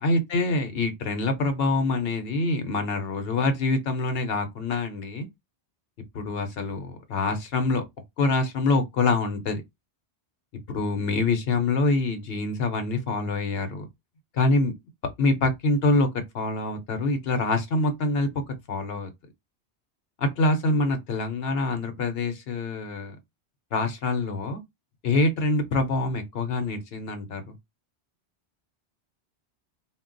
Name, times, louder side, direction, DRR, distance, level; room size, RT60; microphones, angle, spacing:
voice 1, 0.0-5.3 6.1-7.8 8.2-9.6 10.7-13.9 14.4-14.7 15.2-16.1 16.3-18.3 18.7-19.1 20.2-23.2 23.7-24.6 25.0-27.5, left 2 dB, 65° left, 0.9 m, -25 dB
2.2 x 2.1 x 3.7 m
omnidirectional pair, 1.1 m